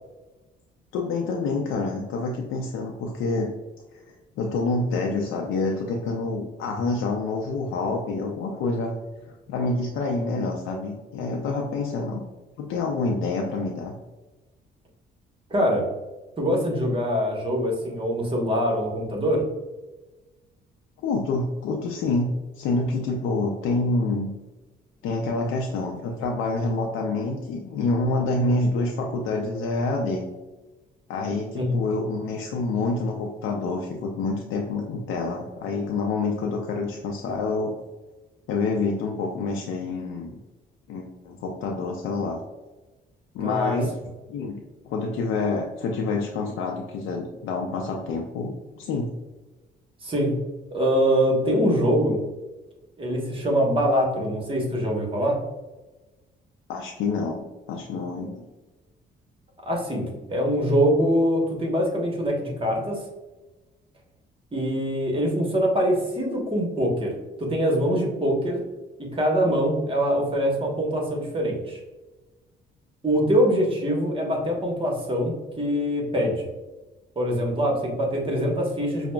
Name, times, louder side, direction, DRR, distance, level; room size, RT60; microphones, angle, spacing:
voice 1, 0.9-3.5 4.1-8.9 9.3-12.2 12.6-13.9 21.0-24.3 25.0-30.2 31.1-37.7 38.5-40.4 40.9-42.4 43.3-44.0 44.3-49.1 56.7-58.5, left 3 dB, 85° left, 0 dB, 0.4 m, -27 dB
voice 2, 15.5-15.9 16.4-19.4 31.5-31.7 43.4-43.8 50.0-50.3 50.7-52.2 53.0-55.4 59.6-63.0 64.5-67.1 67.4-68.6 69.0-71.8 73.0-76.5 77.2-79.1, equal, 25° right, 0 dB, 1.0 m, -24 dB
5.8 x 2.1 x 2.2 m, 1.1 s
cardioid pair, 90°, 20 cm